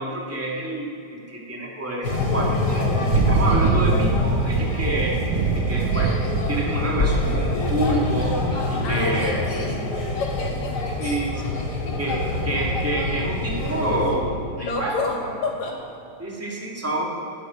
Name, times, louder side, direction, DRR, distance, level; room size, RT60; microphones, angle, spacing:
voice 1, 0.0-2.7 3.3-5.2 5.5-6.1 6.5-8.4 8.7-9.4 11.0-11.6 12.0-14.9 15.2-15.3 16.2-17.2, right 1 dB, 5° right, -3 dB, 2.0 m, -27 dB
sound 1, 2.0-14.2, left 2 dB, 35° left, 2.2 m, -25 dB
Thunder / Rain, 2.2-11.7, right 7 dB, 85° right, 2.2 m, -27 dB
voice 2, 8.8-9.2 9.5-9.8 10.2-10.8 11.0-11.2 14.6-15.8, left 3 dB, 70° left, 0 dB, 3.5 m, -29 dB
13.5 x 8.6 x 9.7 m, 2.6 s
omnidirectional pair, 3.4 m